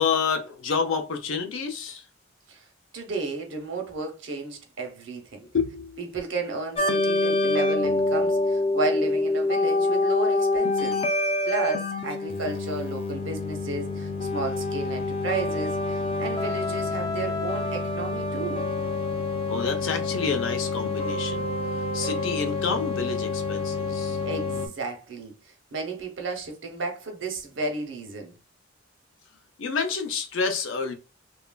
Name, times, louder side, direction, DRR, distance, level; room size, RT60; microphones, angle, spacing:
voice 1, 0.0-2.1 5.5-6.3 19.5-24.2 29.6-30.9, left 5 dB, 80° left, 0.6 m, -29 dB
voice 2, 2.9-5.5 6.0-11.0 11.4-18.7 24.2-25.3 25.7-28.3, right 3 dB, 70° right, 0.7 m, -33 dB
sound 1, 6.8-24.7, left 2 dB, 30° left, 0.3 m, -27 dB
3.0 x 2.4 x 2.2 m
head